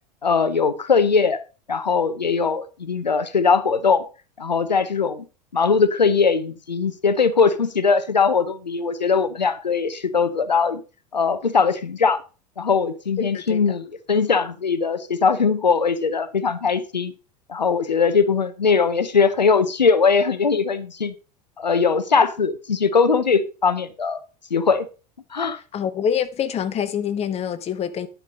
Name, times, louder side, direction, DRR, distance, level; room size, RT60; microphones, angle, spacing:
voice 1, 0.2-1.4 1.7-4.0 4.4-5.2 5.5-10.8 11.1-12.2 12.6-17.1 17.5-21.1 21.6-24.2 24.5-24.9 25.3-25.6, left 5 dB, 85° left, 0.8 m, -20 dB
voice 2, 25.7-28.1, left 8 dB, 30° left, 1.0 m, -25 dB
10.5 x 4.8 x 5.1 m
figure-of-eight pair, 80°, 21 cm